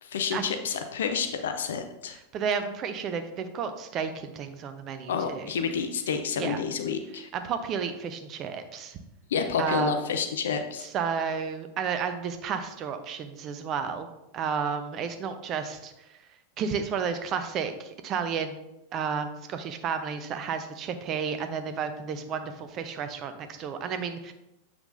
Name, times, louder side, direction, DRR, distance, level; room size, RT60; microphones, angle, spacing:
voice 1, 0.0-2.2 5.1-7.3 9.3-10.9, left 6 dB, 60° left, 7 dB, 0.6 m, -29 dB
voice 2, 2.3-5.5 6.4-6.6 7.3-9.0 9.6-9.9 10.8-14.1 14.3-15.9 16.6-18.6 18.9-24.3, right 6 dB, 35° right, 8 dB, 0.7 m, -32 dB
7.9 x 5.9 x 2.6 m, 0.90 s
figure-of-eight pair, 90°, 0 cm